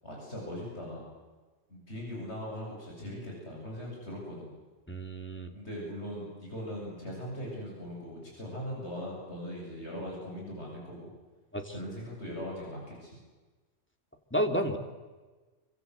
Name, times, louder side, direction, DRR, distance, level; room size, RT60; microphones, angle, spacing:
voice 1, 0.0-1.1 1.7-4.5 5.5-11.1 11.7-13.2, equal, 65° left, -2 dB, 8.3 m, -40 dB
voice 2, 4.9-5.5 11.5-11.7 14.3-14.8, equal, 10° left, 4 dB, 2.8 m, -31 dB
27.0 x 26.0 x 8.2 m, 1.3 s
omnidirectional pair, 1.2 m